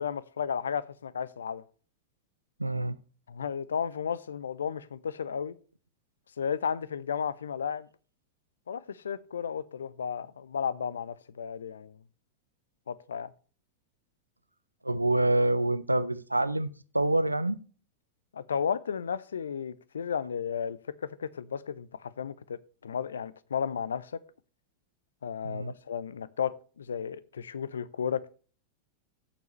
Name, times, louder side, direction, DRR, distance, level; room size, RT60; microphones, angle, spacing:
voice 1, 0.0-1.6 3.3-5.6 6.4-7.9 8.7-12.0 12.9-13.3 18.3-24.1 25.2-28.3, left 7 dB, 70° left, 0.6 m, -33 dB
voice 2, 2.6-3.0 14.8-16.7 16.9-17.6 25.4-25.7, right 1 dB, 85° right, 0.5 m, -26 dB
14.5 x 7.0 x 3.1 m
figure-of-eight pair, 90°, 0 cm